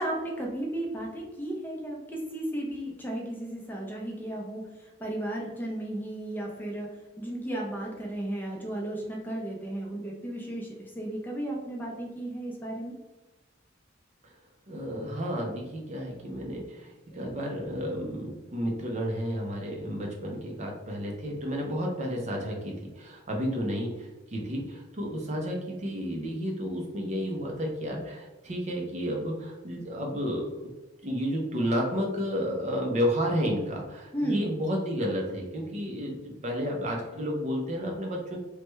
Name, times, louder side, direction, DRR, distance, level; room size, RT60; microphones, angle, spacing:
voice 1, 0.0-6.9 7.2-12.9 34.1-34.5, right 1 dB, 10° left, -2 dB, 0.5 m, -34 dB
voice 2, 14.7-30.6 31.0-38.4, equal, 35° right, 0 dB, 0.5 m, -31 dB
3.2 x 2.1 x 3.0 m, 1.1 s
head